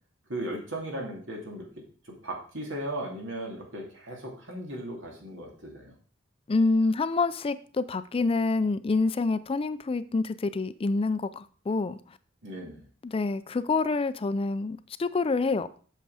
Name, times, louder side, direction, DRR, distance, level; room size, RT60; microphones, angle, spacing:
voice 1, 0.3-1.7 2.0-5.9 12.4-12.8, right 1 dB, 80° right, 0 dB, 2.7 m, -37 dB
voice 2, 6.5-12.0 13.0-15.7, left 3 dB, 30° left, 14 dB, 0.4 m, -27 dB
7.9 x 6.5 x 4.8 m, 0.42 s
head